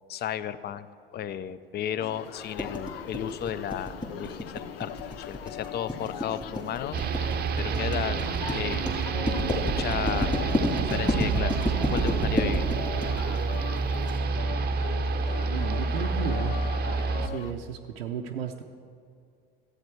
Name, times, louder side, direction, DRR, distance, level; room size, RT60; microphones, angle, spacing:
voice 1, 0.1-0.9 1.1-7.0 7.6-8.2 8.5-9.0 9.6-10.3 10.8-12.7, left 10 dB, 35° left, 15 dB, 0.5 m, -34 dB
sound 1, 2.0-17.5, left 10 dB, 85° left, 0.5 m, -40 dB
sound 2, 2.6-14.1, equal, 15° left, 1.9 m, -30 dB
sound 3, 6.9-17.3, right 5 dB, 35° right, 0.6 m, -28 dB
voice 2, 15.4-16.6 17.2-18.6, right 7 dB, 90° right, 2 dB, 0.6 m, -34 dB
13.0 x 8.0 x 4.5 m, 2.4 s
hypercardioid pair, 70°, 29 cm